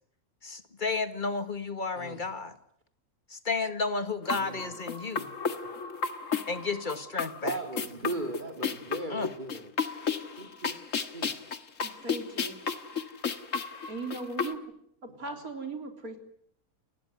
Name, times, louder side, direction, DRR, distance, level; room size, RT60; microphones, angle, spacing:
voice 1, 0.4-2.5 3.3-5.3 6.5-7.6 9.1-9.3, left 4 dB, 35° left, 9 dB, 2.0 m, -32 dB
voice 2, 1.9-2.3 4.3-4.7 7.4-9.7 10.4-10.8 11.1-11.4, right 2 dB, 35° right, 3 dB, 2.6 m, -37 dB
sound 1, 4.2-14.5, left 6 dB, 65° left, 1.9 m, -33 dB
voice 3, 11.8-12.6 13.9-14.6 15.0-16.2, right 3 dB, 85° right, 5 dB, 4.1 m, -38 dB
29.0 x 19.5 x 9.5 m, 0.70 s
omnidirectional pair, 1.5 m